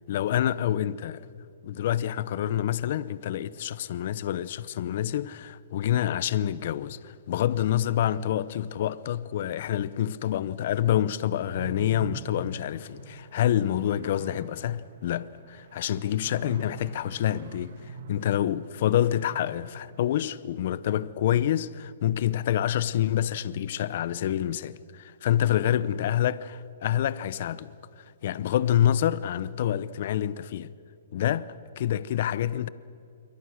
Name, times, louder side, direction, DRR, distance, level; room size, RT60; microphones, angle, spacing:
voice 1, 0.1-1.2 1.6-27.7 28.0-30.7 31.1-32.7, left 11 dB, 55° left, 0.7 m, -27 dB
sound 1, 11.6-20.3, right 5 dB, 60° right, 1.7 m, -44 dB
27.5 x 23.5 x 6.5 m
hypercardioid pair, 150°, 0 cm